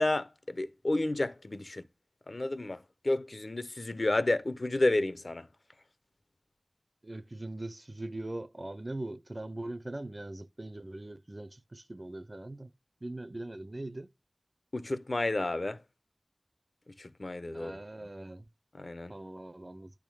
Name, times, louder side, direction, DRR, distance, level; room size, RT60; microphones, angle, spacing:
voice 1, 0.0-1.8 2.3-5.5 14.7-15.8 17.0-17.8 18.8-19.1, left 2 dB, 55° left, 0.7 m, -31 dB
voice 2, 7.0-12.7 13.0-14.1 17.5-18.4 19.1-19.9, right 1 dB, 40° right, 0.5 m, -41 dB
10.5 x 3.6 x 6.2 m
wide cardioid pair, 50°, 0 cm